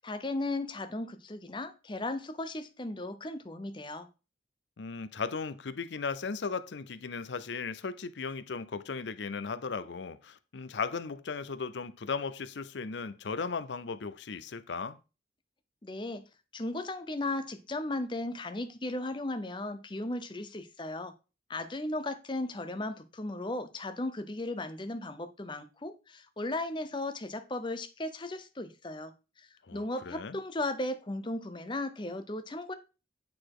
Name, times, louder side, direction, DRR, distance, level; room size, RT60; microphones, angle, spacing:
voice 1, 0.0-4.1 15.8-16.2 16.5-21.1 21.5-32.7, left 2 dB, 25° left, 0.7 m, -36 dB
voice 2, 4.8-15.0 29.7-30.4, left 5 dB, 80° left, 0.6 m, -36 dB
8.8 x 4.0 x 4.8 m
head